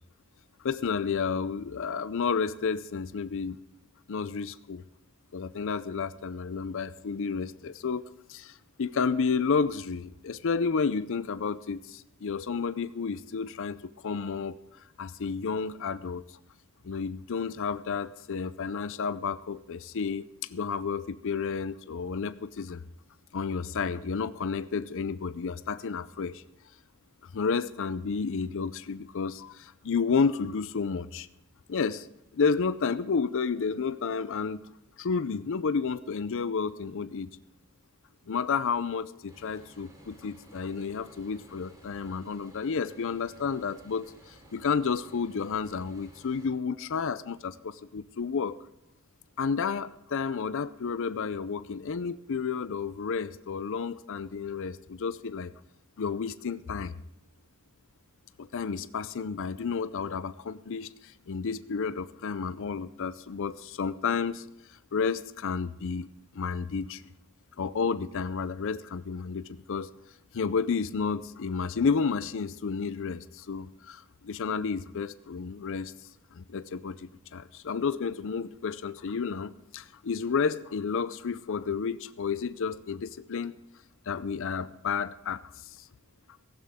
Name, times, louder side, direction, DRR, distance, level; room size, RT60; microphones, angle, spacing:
voice 1, 0.6-3.6 4.1-4.8 5.3-8.0 8.3-14.6 15.0-16.2 16.8-20.2 20.5-22.8 23.3-26.4 27.3-31.3 31.7-32.1 32.3-34.6 35.0-37.3 38.3-48.6 49.4-55.5 56.0-56.9 58.4-64.5 64.9-66.1 66.3-67.0 67.6-69.9 70.3-75.9 76.3-83.6 84.1-85.8, left 5 dB, 60° left, 14 dB, 0.5 m, -31 dB
sound 1, 39.3-46.5, equal, 15° right, 4.0 m, -55 dB
17.0 x 15.0 x 3.6 m, 0.84 s
head